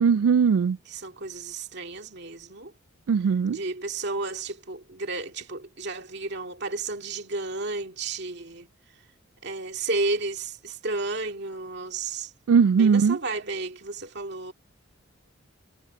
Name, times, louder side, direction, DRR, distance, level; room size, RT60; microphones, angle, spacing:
voice 1, 0.0-0.8 3.1-3.6 12.5-13.2, right 6 dB, 80° right, 0.3 m, -19 dB
voice 2, 0.9-2.7 3.5-8.7 9.4-12.3 12.8-14.5, right 3 dB, 50° right, 2.3 m, -32 dB
head